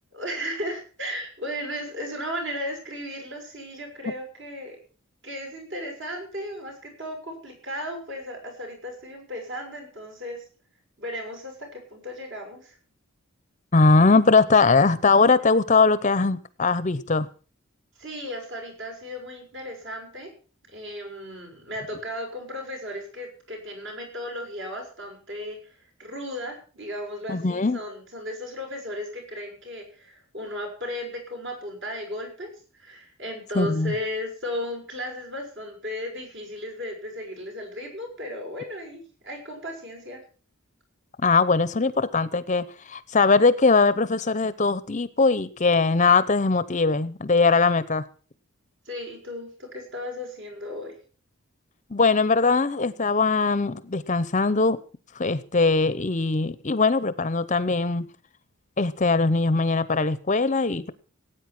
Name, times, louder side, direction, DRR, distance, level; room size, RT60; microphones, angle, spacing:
voice 1, 0.1-4.8 5.2-10.4 11.0-12.7 18.0-20.3 20.7-40.2 48.8-50.9, equal, 55° right, 1 dB, 6.3 m, -35 dB
voice 2, 13.7-17.3 27.3-27.8 33.5-33.9 41.2-48.0 51.9-54.8 55.1-58.1 58.8-60.9, left 4 dB, 35° left, 15 dB, 0.7 m, -21 dB
18.0 x 9.0 x 6.0 m, 0.39 s
head